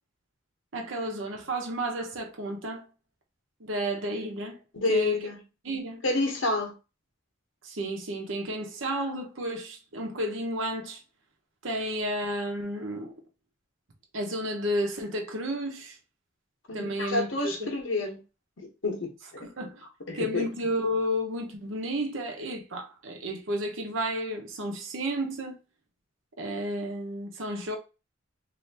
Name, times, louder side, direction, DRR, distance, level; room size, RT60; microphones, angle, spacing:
voice 1, 0.7-2.9 3.6-4.6 4.9-5.1 5.6-6.0 7.6-11.0 11.6-13.2 14.1-16.0 16.7-17.7 19.4-19.8 20.1-25.6 26.4-27.8, equal, 85° right, 0.9 m, -32 dB
voice 2, 4.7-5.4 6.0-6.7 16.7-18.2 18.6-19.1 20.1-20.5, left 2 dB, 75° left, 1.0 m, -28 dB
3.3 x 2.7 x 2.8 m
head